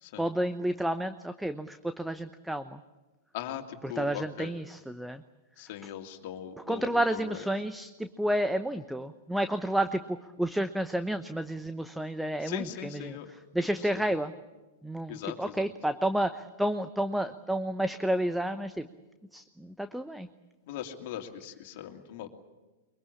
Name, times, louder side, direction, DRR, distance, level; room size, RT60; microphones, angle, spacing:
voice 1, 0.2-2.8 3.8-5.2 6.7-14.3 14.8-18.9 19.3-20.3, right 1 dB, 5° right, 10 dB, 0.9 m, -31 dB
voice 2, 3.3-4.5 5.6-7.4 12.4-13.3 13.8-13.9 15.1-15.7 20.7-22.3, left 10 dB, 50° left, 5 dB, 2.8 m, -40 dB
23.5 x 23.0 x 8.7 m, 1.1 s
figure-of-eight pair, 105°, 0 cm